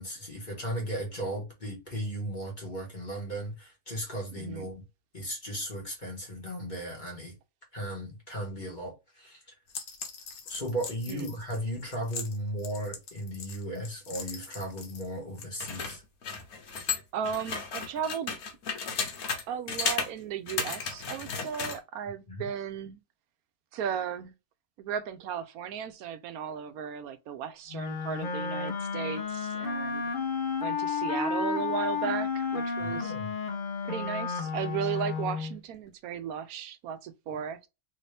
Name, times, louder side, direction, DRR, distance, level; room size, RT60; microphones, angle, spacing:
voice 1, 0.0-4.8 5.1-7.3 7.7-9.4 10.5-16.0 22.3-22.5 32.8-33.3 37.3-37.4, right 1 dB, 35° left, 1.4 m, -36 dB
sound 1, 9.7-15.1 15.4-19.4 19.7-20.1 20.5-21.8, left 5 dB, 85° left, 1.4 m, -35 dB
voice 2, 17.1-18.4 19.5-23.0 23.7-24.3 24.8-30.1 30.6-33.1 33.9-37.7, right 8 dB, 90° right, 1.1 m, -35 dB
Wind instrument woodwind instrument, 27.7-35.6, left 5 dB, 50° left, 0.6 m, -32 dB
3.3 x 2.8 x 3.2 m
omnidirectional pair, 1.5 m